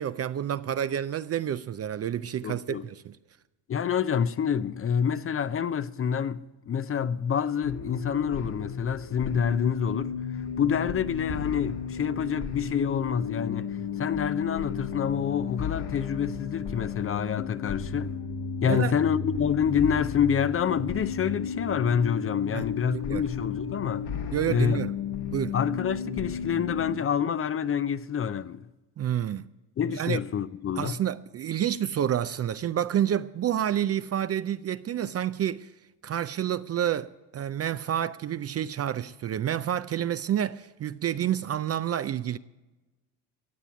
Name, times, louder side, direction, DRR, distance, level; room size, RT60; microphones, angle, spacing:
voice 1, 0.0-3.2 18.6-18.9 22.5-22.6 22.9-23.2 24.3-24.9 25.3-25.5 29.0-29.5 29.9-30.2 30.8-35.7 36.0-42.4, right 10 dB, 35° right, 0.4 m, -29 dB
voice 2, 2.4-2.8 3.7-10.1 10.6-18.1 18.6-24.1 24.5-24.8 25.5-28.7 29.8-31.0, left 8 dB, 30° left, 0.5 m, -27 dB
sound 1, 7.6-27.0, left 6 dB, 60° left, 1.8 m, -34 dB
15.0 x 8.3 x 8.4 m
supercardioid pair, 80°, 45 cm